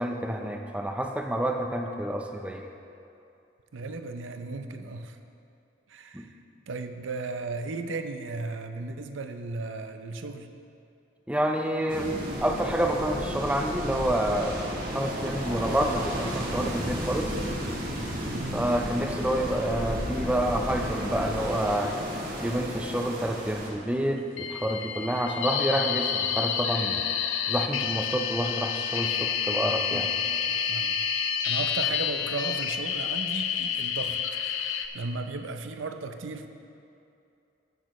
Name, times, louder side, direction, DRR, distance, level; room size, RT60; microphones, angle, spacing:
voice 1, 0.0-2.6 6.1-6.3 11.3-12.1 12.4-14.6 14.9-17.3 18.5-21.9 22.4-27.1 27.5-30.1, right 1 dB, 5° right, 3 dB, 0.5 m, -28 dB
voice 2, 3.7-5.2 5.9-6.3 6.7-10.5 18.3-18.7 29.9-30.2 30.5-34.2 34.4-36.5, right 3 dB, 75° right, 7 dB, 0.6 m, -36 dB
sound 1, 11.9-23.7, equal, 50° right, 1.4 m, -33 dB
sound 2, 24.4-34.9, left 8 dB, 85° left, 0.5 m, -29 dB
15.0 x 6.2 x 3.1 m, 2.6 s
head